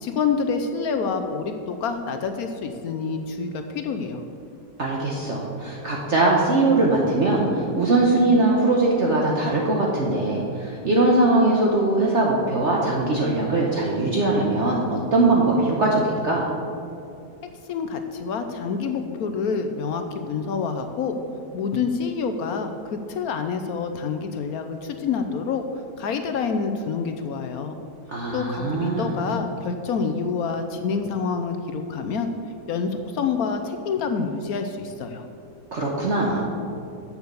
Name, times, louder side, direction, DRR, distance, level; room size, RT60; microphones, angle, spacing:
voice 1, 0.0-4.2 17.7-21.2 21.5-25.6 26.0-27.8 28.3-32.3 32.7-35.2, left 5 dB, 70° left, 7 dB, 1.0 m, -27 dB
voice 2, 4.8-16.5 28.1-29.2 35.7-36.4, right 2 dB, 50° right, -3 dB, 1.2 m, -21 dB
7.8 x 7.1 x 6.8 m, 2.7 s
omnidirectional pair, 1.8 m